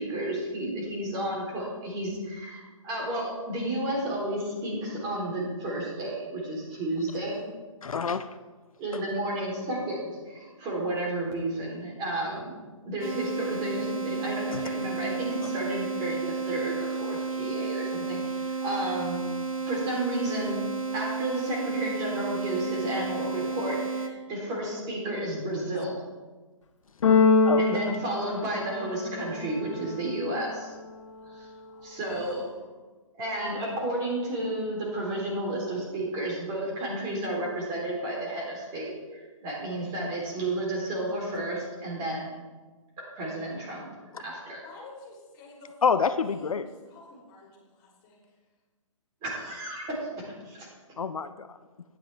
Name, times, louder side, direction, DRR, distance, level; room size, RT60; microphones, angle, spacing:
voice 1, 0.0-7.4 8.8-12.6 12.8-19.2 19.6-20.6 20.9-26.0 27.6-30.7 31.3-31.5 31.8-32.5 33.1-42.3 43.1-43.9 44.2-44.6 49.2-50.7, right 1 dB, 25° right, -2 dB, 3.3 m, -32 dB
voice 2, 7.8-8.2 14.5-14.6 27.4-27.9 45.8-46.7 51.0-51.6, left 6 dB, 85° left, 11 dB, 0.6 m, -27 dB
sound 1, 13.0-24.1, right 4 dB, 80° right, 1.8 m, -32 dB
Keyboard (musical), 27.0-29.1, left 4 dB, 60° left, 1.3 m, -23 dB
voice 3, 31.6-32.0 44.6-48.2, left 2 dB, 25° left, -2 dB, 3.2 m, -50 dB
12.5 x 9.6 x 3.4 m, 1.3 s
hypercardioid pair, 140°, 17 cm